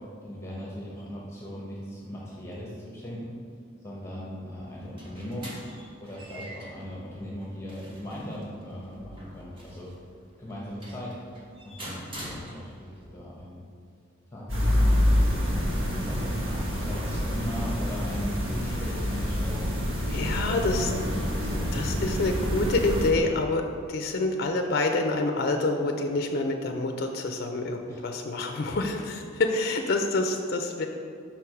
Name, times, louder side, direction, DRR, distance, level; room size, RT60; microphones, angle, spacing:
voice 1, 0.2-3.4 3.8-5.6 6.0-9.9 10.4-11.2 11.6-13.6 14.3-19.7 20.2-21.8 27.9-28.1, equal, 15° left, -5 dB, 0.8 m, -39 dB
sound 1, 4.6-13.0, equal, 25° right, 1.0 m, -45 dB
Studio room tone spaced pair, 14.5-23.1, equal, 80° right, 1.1 m, -27 dB
voice 2, 20.1-20.9 21.7-30.9, left 2 dB, 50° left, 4 dB, 0.4 m, -27 dB
5.7 x 4.6 x 4.8 m, 2.3 s
head